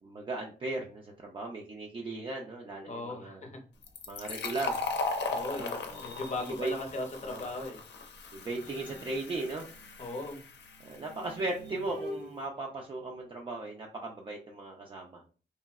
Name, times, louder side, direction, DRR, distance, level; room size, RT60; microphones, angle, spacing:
voice 1, 0.0-3.4 4.1-4.8 5.5-6.0 6.4-6.8 7.2-7.5 8.3-9.7 10.8-15.2, right 2 dB, 30° right, -2 dB, 0.4 m, -37 dB
voice 2, 2.9-3.6 5.3-7.8 10.0-10.4, left 2 dB, 40° left, 3 dB, 0.7 m, -38 dB
Fill (with liquid), 3.8-11.2, left 4 dB, 80° left, 0.5 m, -38 dB
sound 1, 4.7-7.8 8.4-13.5, right 1 dB, 85° right, 0.9 m, -48 dB
3.0 x 2.6 x 2.3 m, 0.38 s
wide cardioid pair, 130°, 18 cm